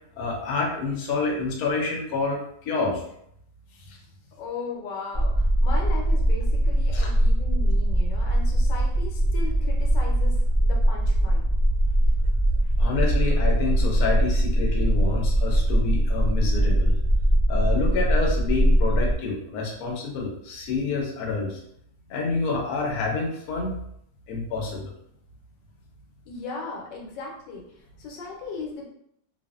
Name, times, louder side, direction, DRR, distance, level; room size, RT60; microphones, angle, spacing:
voice 1, 0.2-3.0 6.9-7.1 12.8-16.9 17.5-21.6 22.1-23.7 24.3-24.8, left 4 dB, 65° left, -2 dB, 1.1 m, -28 dB
voice 2, 4.4-11.4 26.3-28.9, left 3 dB, 90° left, -1 dB, 1.3 m, -37 dB
sound 1, 5.1-19.2, right 1 dB, 35° right, 0.9 m, -21 dB
2.8 x 2.5 x 2.3 m, 0.72 s
omnidirectional pair, 1.8 m